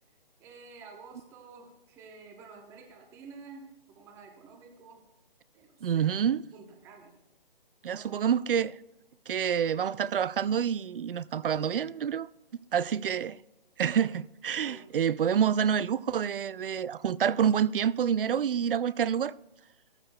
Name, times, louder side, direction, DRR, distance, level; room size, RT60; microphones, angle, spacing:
voice 1, 0.4-5.0 5.5-6.2 6.5-7.1 7.9-8.4 14.6-14.9, right 4 dB, 10° right, 0.8 m, -50 dB
voice 2, 5.8-6.4 7.8-8.8 9.3-12.3 12.7-13.4 13.8-19.3, right 8 dB, 65° right, 0.5 m, -27 dB
14.5 x 13.0 x 2.2 m
hypercardioid pair, 150°, 29 cm